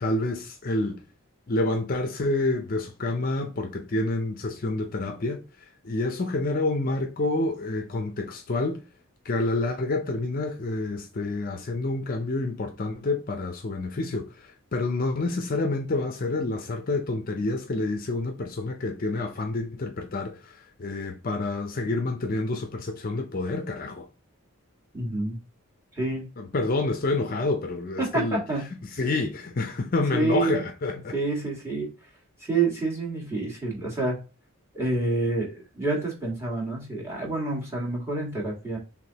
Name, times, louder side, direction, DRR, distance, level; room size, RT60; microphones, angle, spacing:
voice 1, 0.0-1.0 1.5-5.4 5.8-8.8 9.2-20.5 20.8-24.1 26.4-28.4 29.0-31.1, left 2 dB, 40° left, 0.5 m, -28 dB
voice 2, 24.9-25.4 25.9-26.3 28.0-28.7 30.1-30.6 31.1-31.9 32.4-34.2 34.7-38.8, right 3 dB, 10° right, 1.6 m, -28 dB
4.8 x 3.6 x 2.8 m
head